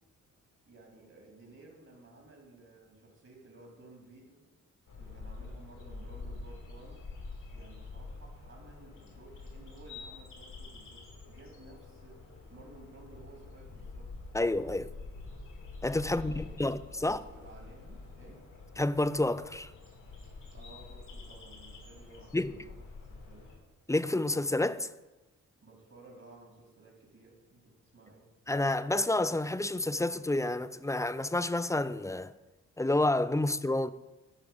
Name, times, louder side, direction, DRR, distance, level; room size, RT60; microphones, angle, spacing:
voice 1, 0.7-4.5 5.0-7.0 7.5-14.1 16.1-16.7 17.0-18.4 20.5-23.5 25.6-28.3, right 2 dB, 55° right, 2.7 m, -55 dB
sound 1, 4.9-23.6, left 3 dB, 90° left, 2.9 m, -47 dB
voice 2, 14.3-14.9 15.8-17.2 18.8-19.7 22.3-22.5 23.9-24.9 28.5-32.3 32.8-33.9, left 2 dB, 10° left, 0.4 m, -29 dB
11.0 x 4.7 x 7.0 m
cardioid pair, 65°, 31 cm